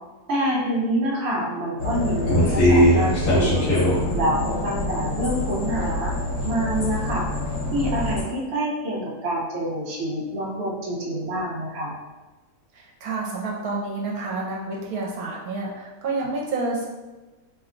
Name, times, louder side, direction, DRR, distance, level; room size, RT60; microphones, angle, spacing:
voice 1, 0.3-3.8 4.1-6.1 6.4-7.3 7.7-11.9, right 1 dB, 55° right, -3 dB, 0.9 m, -26 dB
sound 1, 1.8-8.2, left 1 dB, 60° left, 1.2 m, -22 dB
voice 2, 12.7-16.9, right 3 dB, 80° right, -2 dB, 1.1 m, -29 dB
2.8 x 2.2 x 3.7 m, 1.2 s
omnidirectional pair, 1.6 m